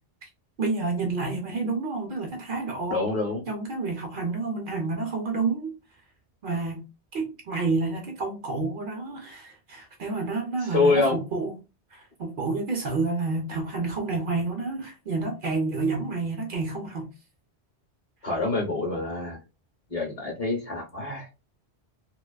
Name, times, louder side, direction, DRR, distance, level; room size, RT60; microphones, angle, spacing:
voice 1, 0.6-3.1 3.5-5.8 6.4-6.8 7.1-11.6 11.9-17.1, right 3 dB, 60° right, 0.6 m, -29 dB
voice 2, 2.9-3.4 10.7-11.1 18.2-19.4 19.9-21.2, left 3 dB, 40° left, 0.7 m, -25 dB
2.4 x 2.2 x 2.3 m
omnidirectional pair, 1.1 m